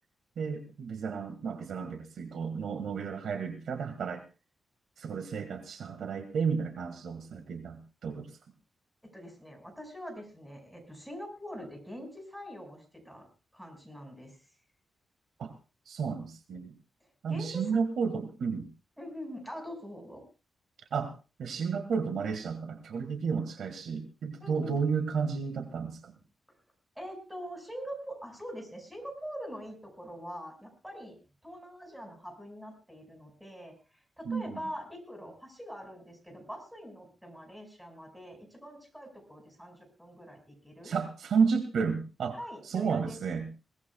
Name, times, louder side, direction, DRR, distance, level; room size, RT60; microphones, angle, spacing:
voice 1, 0.4-4.2 5.0-8.4 15.4-15.5 15.9-16.7 17.2-18.6 20.9-21.1 21.4-26.2 34.3-34.6 40.8-42.4 42.7-43.5, right 5 dB, 85° right, 7 dB, 1.8 m, -32 dB
voice 2, 9.0-13.3 13.5-14.4 17.0-17.6 19.0-20.2 24.4-24.8 27.0-31.2 31.4-40.9 42.4-43.2, equal, ahead, 3 dB, 5.3 m, -44 dB
22.0 x 18.5 x 2.3 m, 0.31 s
wide cardioid pair, 135°, 0 cm